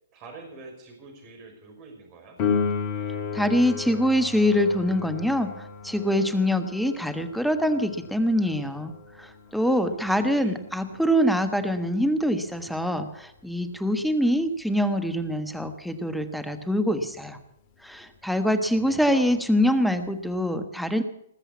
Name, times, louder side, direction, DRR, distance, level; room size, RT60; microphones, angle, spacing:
voice 1, 0.1-2.4 9.5-10.6 18.3-19.4, right 4 dB, 35° right, 3 dB, 5.6 m, -46 dB
Piano, 2.4-12.8 20.3-20.4, left 6 dB, 40° left, 2.8 m, -34 dB
voice 2, 3.3-5.5 5.8-8.9 9.2-17.4 17.8-21.0, equal, ahead, 8 dB, 1.3 m, -24 dB
20.0 x 7.9 x 8.4 m, 0.75 s
hypercardioid pair, 120°, 0 cm